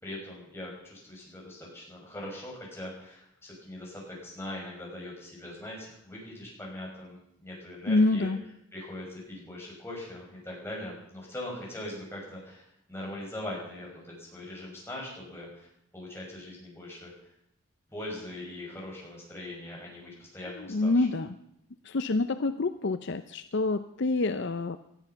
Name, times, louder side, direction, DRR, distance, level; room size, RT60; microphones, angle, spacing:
voice 1, 0.0-8.3 8.7-12.6 12.9-15.7 15.9-17.3 17.9-21.1, left 1 dB, 10° left, -3 dB, 6.0 m, -41 dB
voice 2, 7.9-8.4 20.6-21.3 21.8-24.8, left 2 dB, 50° left, 10 dB, 0.6 m, -27 dB
19.0 x 13.0 x 5.8 m, 0.77 s
head